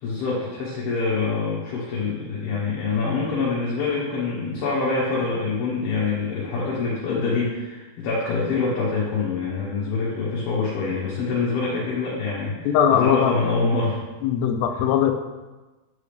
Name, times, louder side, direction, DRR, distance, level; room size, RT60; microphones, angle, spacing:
voice 1, 0.0-14.0 14.7-14.8, left 4 dB, 70° left, -6 dB, 2.7 m, -25 dB
voice 2, 12.7-13.3 14.2-15.1, left 9 dB, 85° left, 5 dB, 2.7 m, -20 dB
7.0 x 6.7 x 3.3 m, 1.2 s
omnidirectional pair, 4.8 m